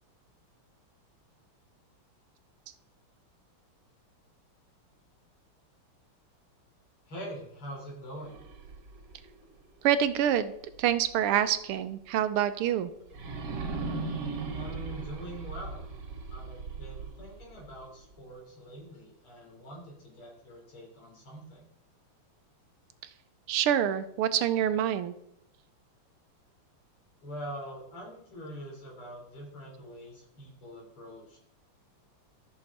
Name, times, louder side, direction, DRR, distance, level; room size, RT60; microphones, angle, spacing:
voice 1, 7.1-8.4 14.5-15.8 16.3-21.7 27.2-31.4, right 1 dB, 75° left, -1 dB, 4.2 m, -44 dB
sound 1, 8.2-11.2 11.6-11.7 13.1-18.1, right 4 dB, 55° right, 1.8 m, -39 dB
voice 2, 9.8-10.5 10.8-12.9 23.5-25.1, right 10 dB, 90° right, 12 dB, 1.7 m, -26 dB
13.5 x 6.6 x 4.2 m, 0.77 s
omnidirectional pair, 2.4 m